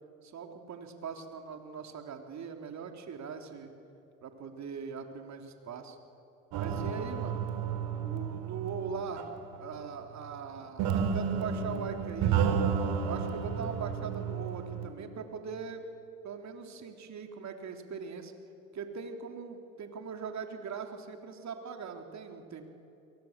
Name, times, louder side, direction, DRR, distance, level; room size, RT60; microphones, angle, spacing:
voice 1, 0.2-3.7 4.2-6.0 6.5-7.5 8.0-9.2 9.6-12.4 13.0-15.8 16.2-18.3 18.7-22.7, right 6 dB, 45° right, 5 dB, 3.3 m, -41 dB
sound 1, 6.5-9.5 10.8-14.9, right 7 dB, 60° right, 3.8 m, -31 dB
29.0 x 23.0 x 7.4 m, 2.9 s
hypercardioid pair, 70°, 40 cm